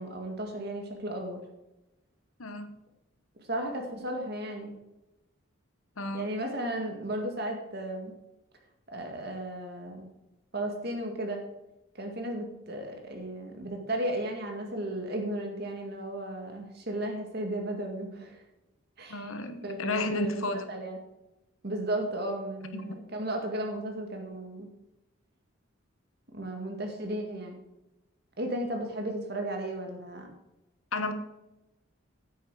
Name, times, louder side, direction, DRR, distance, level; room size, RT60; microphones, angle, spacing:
voice 1, 0.0-1.4 3.4-4.7 6.1-8.1 8.9-10.1 10.5-11.4 12.0-18.4 19.0-19.3 19.6-21.0 21.6-24.7 26.3-27.6 28.4-30.3, right 1 dB, 50° right, 3 dB, 2.0 m, -34 dB
voice 2, 6.0-6.3 19.1-20.6 22.7-23.0 30.9-31.1, left 2 dB, 80° left, 9 dB, 1.1 m, -32 dB
10.0 x 8.5 x 4.8 m, 0.96 s
head